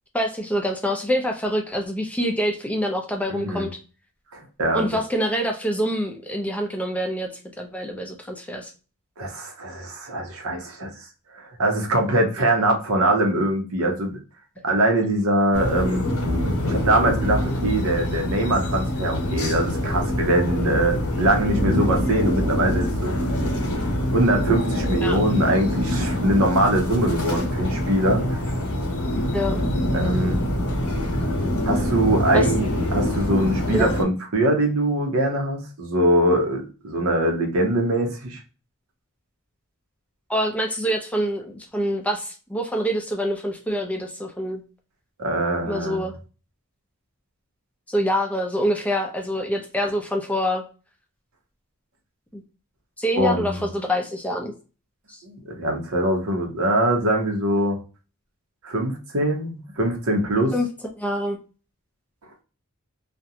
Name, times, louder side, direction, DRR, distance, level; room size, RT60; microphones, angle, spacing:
voice 1, 0.1-3.8 4.7-7.3 7.6-8.7 25.0-25.2 29.3-29.6 32.3-32.5 33.7-33.9 40.3-44.6 45.6-46.2 47.9-50.6 52.3-52.4 53.0-54.5 55.1-55.2 60.5-60.7 61.0-61.4, equal, 5° left, 2 dB, 0.5 m, -25 dB
voice 2, 3.3-3.7 4.3-4.8 9.2-10.9 11.3-14.2 14.6-16.1 16.6-23.2 24.1-28.4 29.9-30.4 31.6-38.4 45.2-46.0 53.2-53.6 55.2-57.8 58.6-60.5, right 1 dB, 70° right, 3 dB, 0.8 m, -22 dB
sound 1, 15.5-34.0, left 1 dB, 85° left, 0.8 m, -25 dB
2.5 x 2.2 x 2.7 m, 0.34 s
head